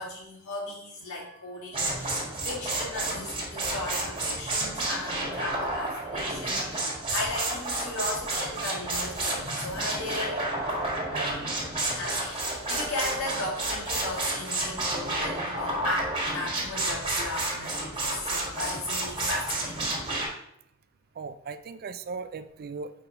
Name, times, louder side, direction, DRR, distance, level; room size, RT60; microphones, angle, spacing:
voice 1, 0.0-10.5 11.9-19.9, left 2 dB, 75° left, -4 dB, 2.2 m, -36 dB
sound 1, 1.7-20.3, right 2 dB, 25° right, 1.7 m, -31 dB
voice 2, 11.1-11.5 21.2-22.9, right 4 dB, 45° right, 12 dB, 0.4 m, -38 dB
4.9 x 4.6 x 4.8 m, 0.75 s
head